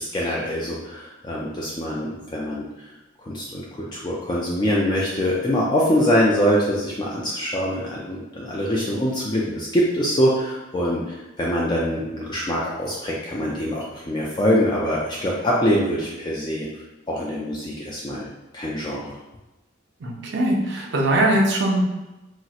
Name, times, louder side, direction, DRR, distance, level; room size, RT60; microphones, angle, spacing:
voice 1, 0.0-2.6 3.2-16.7 17.1-18.3 18.5-19.1, equal, 20° left, -4 dB, 0.3 m, -24 dB
voice 2, 20.0-21.8, right 1 dB, 60° right, 0 dB, 0.5 m, -21 dB
4.0 x 2.0 x 2.4 m, 1.0 s
head